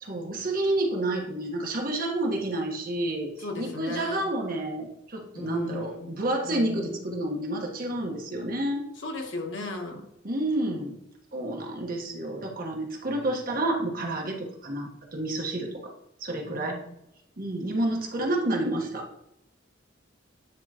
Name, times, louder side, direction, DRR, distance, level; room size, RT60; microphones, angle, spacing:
voice 1, 0.0-8.8 10.2-11.0 11.3-15.9 16.2-16.8 17.4-19.1, right 1 dB, 50° right, 1 dB, 1.3 m, -29 dB
voice 2, 3.4-4.2 5.3-6.1 6.4-7.0 9.0-10.0 16.5-16.9, left 2 dB, 70° left, 2 dB, 1.3 m, -36 dB
9.7 x 3.7 x 3.0 m, 0.81 s
head